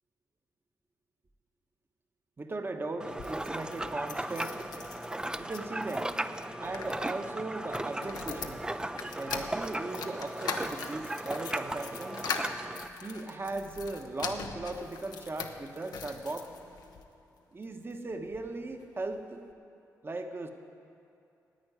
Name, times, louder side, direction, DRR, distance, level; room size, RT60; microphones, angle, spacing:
voice 1, 2.4-4.7 5.4-6.2 6.6-8.6 9.1-12.2 13.0-16.5 17.5-19.4 20.0-20.5, right 2 dB, 35° right, 6 dB, 1.2 m, -38 dB
sound 1, 3.0-17.0 17.6-18.5 18.8-18.9 19.1-19.2, left 6 dB, 80° left, 0.8 m, -42 dB
sound 2, 3.0-12.9, right 1 dB, 10° right, 0.4 m, -36 dB
10.5 x 8.8 x 9.3 m, 2.7 s
cardioid pair, 65°, 7 cm